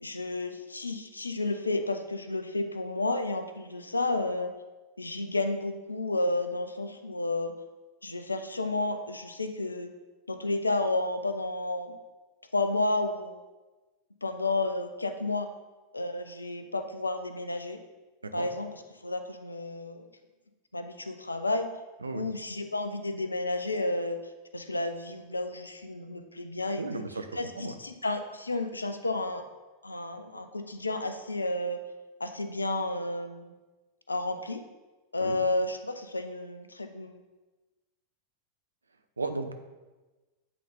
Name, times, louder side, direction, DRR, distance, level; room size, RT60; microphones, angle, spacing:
voice 1, 0.0-4.5 5.0-7.5 8.0-9.9 10.3-11.9 12.5-13.4 14.2-15.5 15.9-17.8 18.3-20.1 20.7-21.7 22.1-24.2 24.5-27.0 27.3-29.4 29.8-31.8 32.2-33.5 34.1-34.6 35.1-37.2, left 2 dB, 80° left, 9 dB, 0.6 m, -31 dB
voice 2, 26.8-27.3 27.6-27.7 35.2-35.4 39.2-39.5, right 3 dB, 75° right, 8 dB, 0.6 m, -34 dB
8.5 x 3.9 x 5.1 m, 1.2 s
figure-of-eight pair, 90°, 0 cm